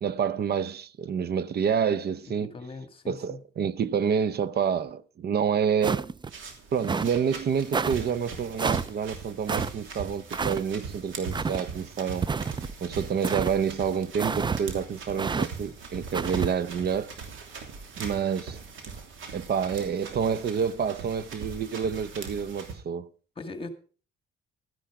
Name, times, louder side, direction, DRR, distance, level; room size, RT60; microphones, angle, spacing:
voice 1, 0.0-2.5 3.1-6.0 6.7-12.2 12.8-17.1 18.0-18.6 19.3-23.1, right 7 dB, 55° right, 0.8 m, -28 dB
voice 2, 2.4-3.4 23.4-23.7, left 3 dB, 25° left, 2.1 m, -39 dB
sound 1, 5.8-6.3 6.8-7.2 7.7-8.0 8.6-8.9 9.5-9.7 10.3-10.6 11.3-11.6 12.2-12.7 13.2-13.5 14.2-14.6 15.2-15.5 16.1-16.5, right 5 dB, 25° right, 0.5 m, -29 dB
sound 2, 6.3-22.8, right 5 dB, 80° right, 3.1 m, -41 dB
12.5 x 10.5 x 4.9 m
cardioid pair, 90°, 20 cm